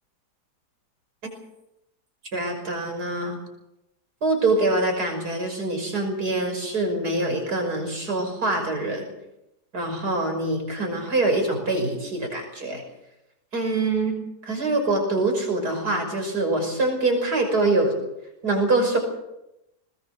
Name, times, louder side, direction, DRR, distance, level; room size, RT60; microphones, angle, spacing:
voice 1, 2.3-3.4 4.2-9.1 9.7-12.8 13.5-14.2 14.4-17.9 18.4-19.0, right 2 dB, 70° right, 4 dB, 6.4 m, -24 dB
20.5 x 20.5 x 6.8 m, 0.89 s
omnidirectional pair, 1.8 m